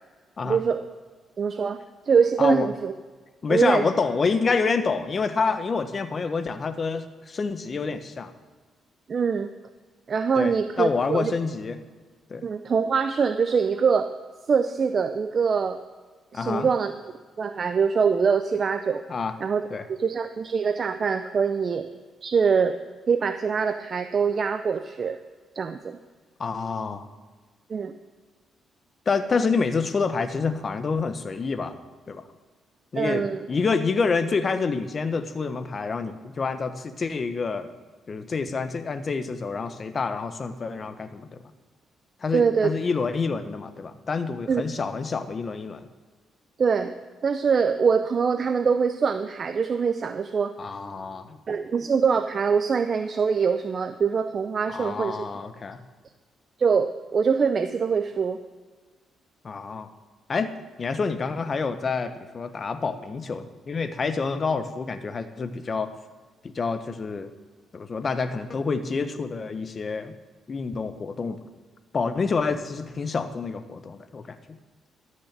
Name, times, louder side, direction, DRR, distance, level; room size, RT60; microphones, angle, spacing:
voice 1, 0.4-0.8 1.4-1.8 2.1-2.9 3.5-3.9 9.1-9.5 10.1-11.3 12.4-14.1 14.5-15.8 16.3-16.9 17.4-19.0 19.4-19.6 19.9-21.8 22.2-22.7 23.1-25.2 25.6-26.0 27.7-27.9 32.9-33.5 42.3-42.7 44.5-44.6 46.6-46.9 47.2-50.5 51.5-55.2 56.6-58.4, right 6 dB, 45° right, 9 dB, 0.6 m, -23 dB
voice 2, 3.4-8.3 10.3-11.8 12.3-12.5 16.3-16.7 19.1-19.4 19.7-19.8 26.4-27.1 29.1-31.8 32.1-32.2 32.9-37.7 38.1-41.4 42.2-45.9 50.6-51.4 54.7-55.8 59.4-59.9 60.3-65.9 66.4-67.3 67.7-70.1 70.5-71.4 71.9-74.4, left 4 dB, 40° left, 10 dB, 1.1 m, -27 dB
13.5 x 6.5 x 7.4 m, 1.4 s
cardioid pair, 90°, 0 cm